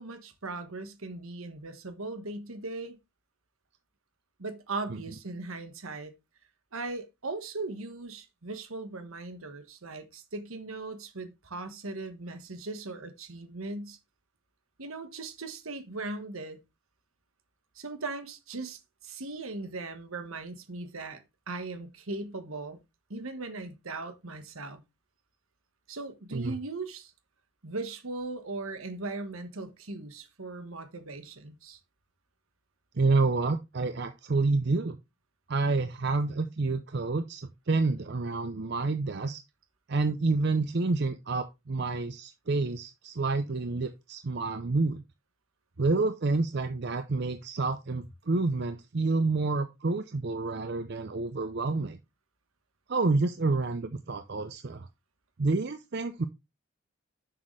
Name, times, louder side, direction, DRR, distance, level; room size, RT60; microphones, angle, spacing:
voice 1, 0.0-3.0 4.4-6.1 6.7-14.0 14.8-16.6 17.7-22.8 23.1-24.8 25.9-27.1 27.6-31.8, right 3 dB, 75° right, 1.3 m, -38 dB
voice 2, 33.0-35.0 35.5-39.4 39.9-45.0 45.8-52.0 52.9-54.9 55.4-56.2, right 3 dB, 50° right, 0.6 m, -28 dB
7.4 x 6.6 x 3.2 m
head